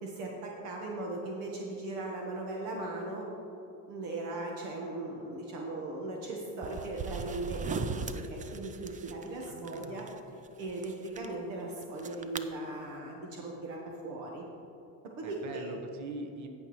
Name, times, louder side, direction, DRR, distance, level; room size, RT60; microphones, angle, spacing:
voice 1, 0.0-3.3 3.9-10.1 10.6-14.4 15.2-15.7, right 2 dB, 70° right, -1 dB, 1.3 m, -38 dB
sound 1, 6.6-10.2 10.4-11.2 11.8-12.4, right 5 dB, 20° right, 0.4 m, -38 dB
voice 2, 9.5-10.0 15.2-16.5, right 2 dB, 40° right, 5 dB, 1.1 m, -42 dB
16.5 x 5.8 x 3.1 m, 3.0 s
supercardioid pair, 80°, 45 cm